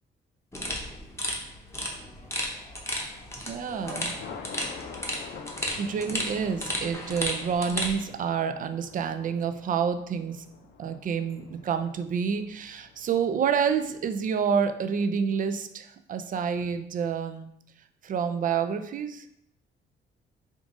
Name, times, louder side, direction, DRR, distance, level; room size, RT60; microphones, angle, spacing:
sound 1, 0.5-8.0, left 1 dB, 15° left, 0.8 m, -34 dB
Thunder, 3.4-14.7, left 5 dB, 75° left, 0.6 m, -47 dB
voice 1, 3.5-4.1 5.8-10.4 10.8-17.5 18.0-19.3, right 6 dB, 45° right, 8 dB, 0.4 m, -28 dB
3.7 x 2.4 x 3.8 m, 0.75 s
cardioid pair, 90°, 20 cm